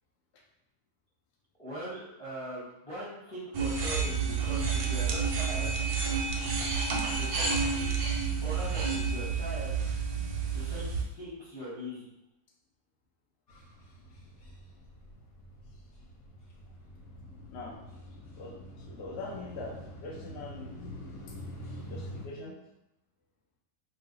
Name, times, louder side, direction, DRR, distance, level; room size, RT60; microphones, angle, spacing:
voice 1, 1.6-5.8 7.0-8.0 8.4-9.8 10.5-12.0, right 1 dB, 10° left, -7 dB, 0.4 m, -41 dB
sound 1, 3.5-11.0, right 5 dB, 85° right, 1.3 m, -30 dB
sound 2, 13.5-22.3, equal, 60° left, 1.2 m, -46 dB
voice 2, 18.9-20.7 21.9-22.6, left 2 dB, 90° left, -2 dB, 0.5 m, -42 dB
3.1 x 2.0 x 3.7 m, 0.88 s
omnidirectional pair, 1.8 m